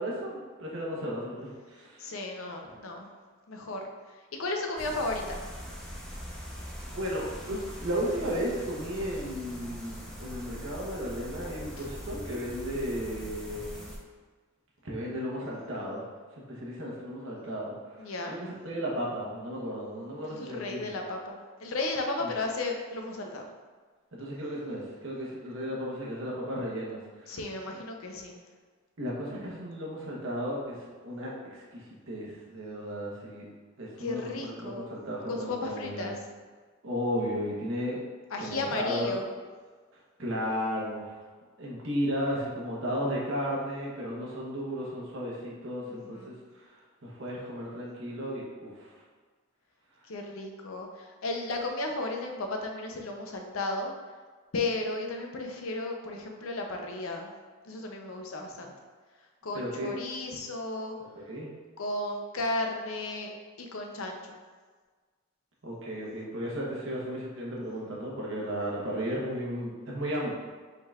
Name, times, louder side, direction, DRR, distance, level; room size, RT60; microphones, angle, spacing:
voice 1, 0.0-2.1 6.2-6.5 6.9-13.7 14.8-16.0 16.3-20.9 22.2-22.3 24.1-27.4 27.7-27.8 29.0-33.4 33.8-36.1 36.8-38.1 38.4-39.2 39.9-41.2 41.6-49.0 59.5-59.9 61.1-61.5 65.6-70.3, equal, 65° right, -4 dB, 1.0 m, -34 dB
voice 2, 2.0-3.1 3.5-3.9 4.4-5.4 18.0-18.4 20.3-23.5 27.3-28.4 34.0-34.9 35.3-36.2 38.3-39.3 45.9-46.3 50.1-53.9 54.5-57.3 57.6-58.7 59.4-61.0 61.8-64.3, left 2 dB, 80° left, 2 dB, 0.6 m, -34 dB
sound 1, 4.8-14.0, equal, 5° left, 0.7 m, -42 dB
5.3 x 3.8 x 2.4 m, 1.5 s
head